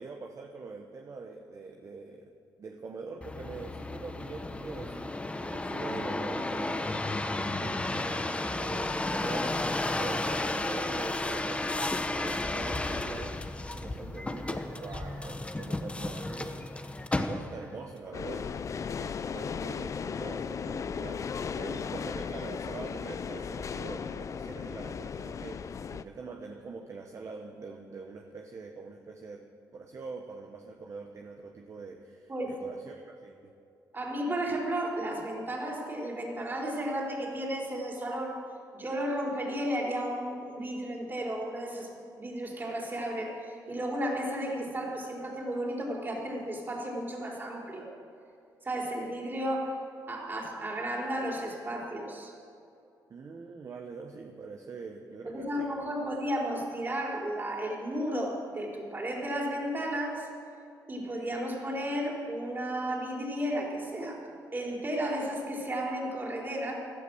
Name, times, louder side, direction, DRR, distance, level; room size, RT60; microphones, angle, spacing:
voice 1, 0.0-2.3 2.6-13.4 13.7-29.5 29.7-33.5 53.1-55.7 56.0-56.1, right 4 dB, 45° right, 3 dB, 1.2 m, -44 dB
sound 1, 3.2-17.8 18.3-18.9, left 2 dB, 15° left, 1.0 m, -33 dB
sound 2, 18.1-26.0, left 6 dB, 45° left, 0.6 m, -36 dB
voice 2, 33.9-38.4 38.7-41.9 42.2-47.9 48.6-49.8 50.1-52.3 55.2-60.3 60.9-64.2 64.5-66.7, right 1 dB, 30° right, -2 dB, 4.1 m, -33 dB
16.5 x 12.0 x 6.3 m, 2.6 s
cardioid pair, 85°, 7 cm